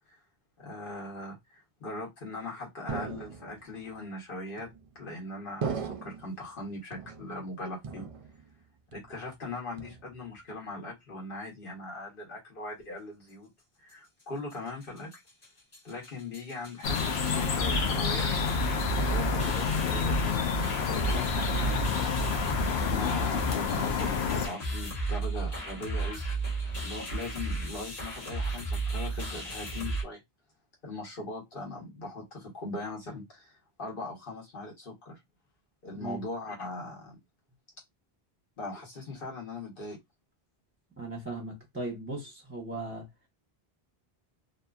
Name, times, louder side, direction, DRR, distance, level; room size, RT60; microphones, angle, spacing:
voice 1, 0.6-4.7 4.9-8.1 8.9-13.5 13.8-15.2 15.8-18.3 19.0-22.0 22.7-26.2 26.8-30.2 30.8-35.2 35.8-37.2 38.6-40.0, left 2 dB, 60° left, 1.3 m, -40 dB
sound 1, 2.9-3.7 4.6-5.1 5.6-6.4 6.9-7.5 7.8-8.6 8.9-9.3 9.8-10.4, right 6 dB, 55° right, 0.4 m, -38 dB
sound 2, 14.5-14.6 14.8-15.1 15.4-15.5 15.7-30.0, right 3 dB, 40° left, 1.0 m, -34 dB
sound 3, 16.8-24.5, left 5 dB, 90° left, 0.9 m, -29 dB
voice 2, 41.0-43.1, right 2 dB, 10° right, 0.8 m, -38 dB
2.7 x 2.5 x 2.3 m
omnidirectional pair, 1.0 m